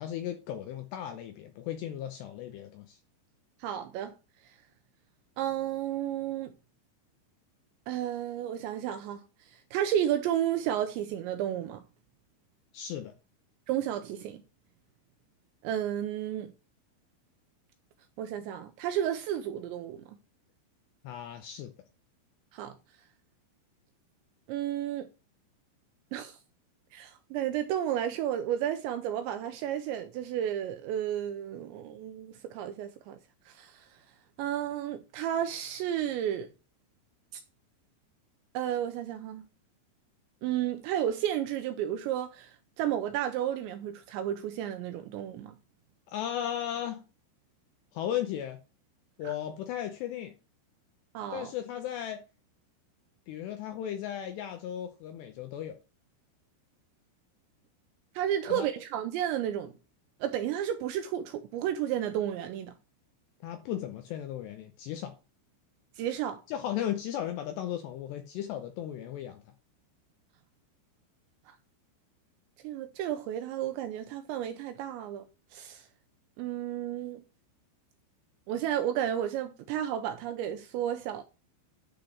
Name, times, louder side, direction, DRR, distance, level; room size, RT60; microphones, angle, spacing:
voice 1, 0.0-3.0 12.7-13.1 21.0-21.7 46.1-47.0 47.9-48.6 49.2-50.3 51.3-52.2 53.3-55.7 58.5-58.7 63.4-65.2 66.5-69.4, left 10 dB, 85° left, 2.5 m, -36 dB
voice 2, 3.6-4.1 5.4-6.5 7.9-9.2 9.5-11.8 13.7-14.4 15.6-16.5 18.2-20.0 22.5-22.7 24.5-25.1 26.1-26.4 26.9-33.2 33.5-33.9 34.4-36.5 38.5-39.5 40.4-45.6 51.1-51.5 58.2-59.7 60.2-62.7 66.0-66.4 71.5-71.6 72.6-75.2 75.5-75.9 76.4-77.2 78.5-81.2, right 10 dB, 80° right, 2.6 m, -32 dB
10.5 x 4.0 x 6.4 m
omnidirectional pair, 5.8 m